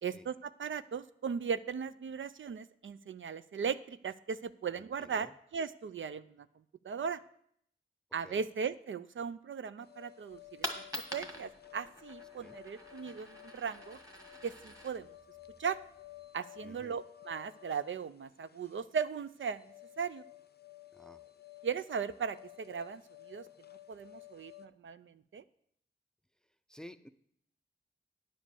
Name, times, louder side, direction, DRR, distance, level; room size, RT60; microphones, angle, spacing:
voice 1, 0.0-6.5 6.8-7.2 8.1-10.7 10.9-14.0 14.4-15.1 15.6-15.8 16.3-19.7 20.0-20.2 21.6-23.5 23.9-25.4, right 6 dB, 70° right, 13 dB, 0.4 m, -38 dB
voice 2, 4.8-5.3 8.2-8.4 12.3-12.6 16.6-17.0 20.9-21.2 26.7-27.1, equal, 5° left, 12 dB, 0.5 m, -53 dB
sound 1, 9.8-24.7, left 15 dB, 50° left, 0.5 m, -55 dB
Coin (dropping), 10.3-16.3, equal, 15° right, 1.7 m, -46 dB
10.0 x 5.2 x 6.9 m, 0.69 s
cardioid pair, 50°, 21 cm